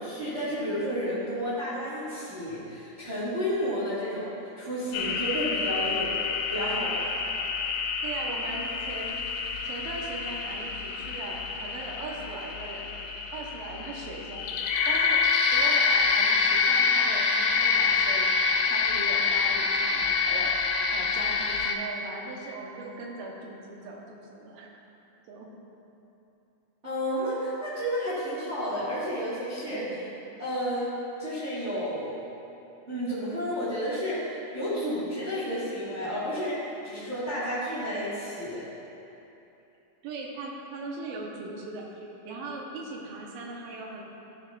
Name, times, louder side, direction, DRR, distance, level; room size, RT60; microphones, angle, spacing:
voice 1, 0.0-6.1 6.5-7.2 26.8-29.8 30.4-32.2 32.9-38.6, equal, 35° right, -10 dB, 1.2 m, -31 dB
sound 1, 4.9-21.8, left 5 dB, 85° left, 2.3 m, -27 dB
voice 2, 8.0-9.2 9.6-12.9 13.3-14.5 14.9-15.2 15.5-18.3 18.7-20.5 20.9-24.7 25.3-25.5 29.7-30.0 40.0-44.0, right 3 dB, 85° right, -1 dB, 2.6 m, -39 dB
13.0 x 6.7 x 2.4 m, 2.9 s
omnidirectional pair, 4.1 m